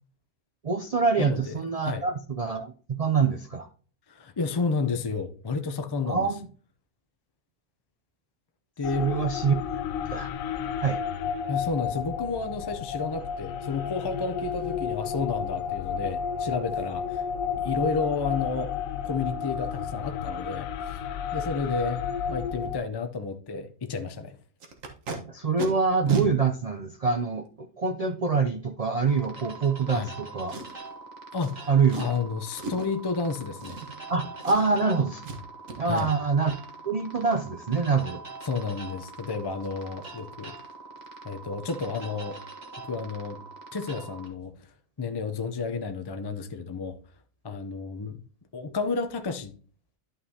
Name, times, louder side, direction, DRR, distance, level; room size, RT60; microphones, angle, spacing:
voice 1, 0.6-3.7 6.0-6.5 9.0-9.6 10.1-10.3 10.8-11.0 25.3-30.6 31.7-32.0 34.1-35.2 35.8-36.5 36.9-38.2, right 5 dB, 60° right, 0.4 m, -25 dB
voice 2, 1.2-1.5 1.8-2.0 4.1-6.3 8.8-9.1 11.5-17.3 17.6-18.7 19.0-21.0 21.3-24.4 29.9-30.1 31.3-31.7 32.0-33.8 35.9-36.1 38.4-40.6 41.2-42.4 42.8-43.4 43.7-44.7 45.0-47.0 47.4-48.2 48.5-49.5, left 4 dB, 35° left, 0.4 m, -31 dB
sound 1, 8.8-22.8, left 7 dB, 90° left, 1.0 m, -32 dB
Packing tape duct tape, 24.6-25.2 25.6-25.7 26.1-26.3 27.0-27.1 30.5-30.9 31.4-31.5 31.9-32.2 32.6-32.9 33.6-34.1 34.4-34.9 35.2-35.4 35.7-36.1 39.1-39.2 39.5-39.7 40.0-40.2 40.5-40.7 41.0-41.1, right 4 dB, 75° right, 1.7 m, -34 dB
sound 2, 29.1-44.3, right 3 dB, 35° right, 1.5 m, -44 dB
11.5 x 5.5 x 2.8 m
omnidirectional pair, 1.4 m